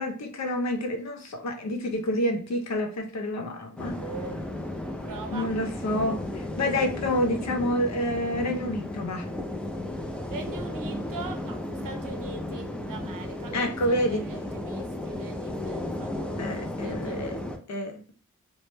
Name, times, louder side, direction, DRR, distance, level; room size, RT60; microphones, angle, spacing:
voice 1, 0.0-4.0 5.3-9.3 13.5-14.2 16.4-17.3 17.7-18.0, left 1 dB, 55° left, 4 dB, 0.6 m, -28 dB
sound 1, 3.8-17.6, left 1 dB, 5° left, 0.3 m, -34 dB
voice 2, 3.8-4.4 5.0-5.5 10.3-17.8, right 4 dB, 75° right, 5 dB, 0.6 m, -42 dB
2.2 x 2.0 x 3.0 m, 0.41 s
cardioid pair, 60°, 32 cm